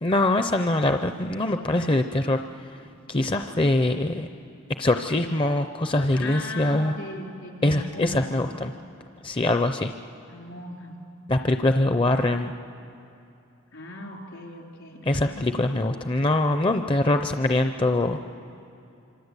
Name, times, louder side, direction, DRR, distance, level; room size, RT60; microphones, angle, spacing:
voice 1, 0.0-2.7 3.1-4.3 4.8-6.9 7.6-8.7 9.2-9.9 11.3-12.5 15.0-18.2, left 2 dB, 25° left, 7 dB, 0.6 m, -23 dB
voice 2, 6.1-8.2 10.3-10.9 13.7-15.5, left 1 dB, 75° left, 1 dB, 4.1 m, -38 dB
26.5 x 25.5 x 8.2 m, 2.7 s
head